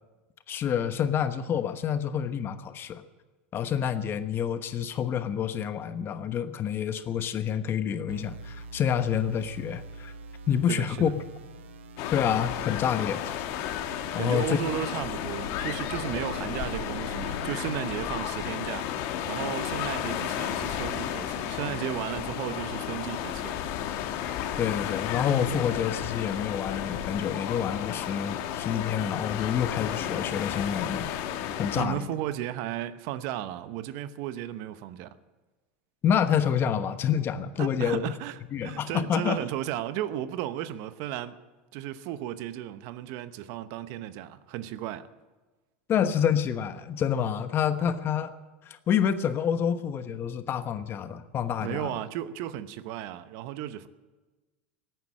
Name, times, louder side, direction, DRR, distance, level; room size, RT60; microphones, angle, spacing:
voice 1, 0.5-3.0 3.5-10.1 10.5-11.1 12.1-13.4 14.1-14.6 24.6-31.1 31.6-32.1 36.0-38.0 38.5-39.4 45.9-48.3 48.7-51.9, left 8 dB, 35° left, 1.1 m, -28 dB
sound 1, 8.1-18.1, right 3 dB, 85° right, 1.1 m, -45 dB
voice 2, 10.7-11.1 14.2-18.9 19.2-23.6 31.7-35.2 37.6-41.4 41.7-45.1 51.6-53.9, right 12 dB, 60° right, 0.9 m, -34 dB
sound 2, 12.0-31.9, left 10 dB, 60° left, 1.6 m, -33 dB
16.5 x 9.3 x 8.8 m
hypercardioid pair, 105°, 6 cm